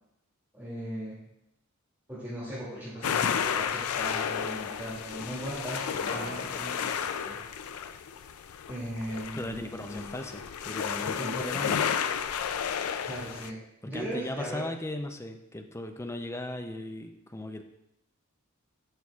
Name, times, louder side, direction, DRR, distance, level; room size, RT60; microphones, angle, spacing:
voice 1, 0.5-1.2 2.1-7.6 8.3-8.4 8.7-10.2 11.2-11.5 13.0-14.6, equal, 10° right, -11 dB, 2.4 m, -38 dB
sound 1, 2.6-3.5 4.0-5.1 5.3-9.3, left 2 dB, 60° left, 1.2 m, -45 dB
sound 2, 3.0-13.5, left 7 dB, 90° left, 0.4 m, -32 dB
voice 2, 9.3-11.9 13.8-17.6, left 1 dB, 15° left, 5 dB, 0.5 m, -37 dB
11.0 x 6.4 x 2.4 m, 0.83 s
head